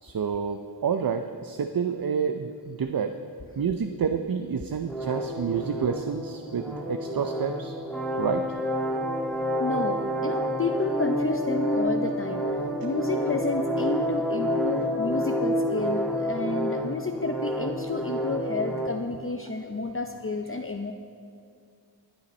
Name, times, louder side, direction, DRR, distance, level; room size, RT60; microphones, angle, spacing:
voice 1, 0.0-3.2 3.6-7.7 8.2-8.5, right 6 dB, 50° right, 8 dB, 0.6 m, -29 dB
sound 1, 4.9-18.9, equal, ahead, 1.7 m, -29 dB
voice 2, 9.6-20.9, left 3 dB, 30° left, 4 dB, 0.7 m, -31 dB
20.0 x 8.7 x 4.3 m, 2.3 s
cardioid pair, 45°, 44 cm